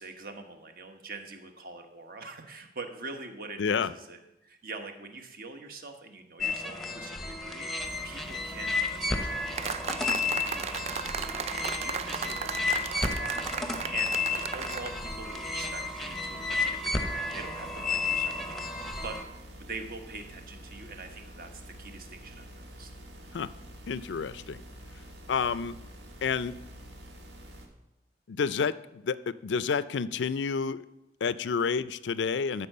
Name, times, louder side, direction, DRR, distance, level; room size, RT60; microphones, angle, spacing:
voice 1, 0.0-7.7 8.0-18.7 19.0-19.2 19.5-22.9, right 3 dB, 55° right, 6 dB, 1.1 m, -44 dB
voice 2, 3.6-3.9 23.3-23.5 23.9-24.6 25.3-25.8 26.2-26.5 28.3-30.8 31.2-32.7, left 5 dB, 85° left, 17 dB, 0.4 m, -29 dB
sound 1, 6.4-19.2, left 3 dB, ahead, 0.8 m, -32 dB
sound 2, 7.8-27.7, equal, 75° right, 1.6 m, -47 dB
sound 3, 9.6-14.9, right 6 dB, 35° right, 0.4 m, -35 dB
13.5 x 4.6 x 6.6 m, 0.91 s
head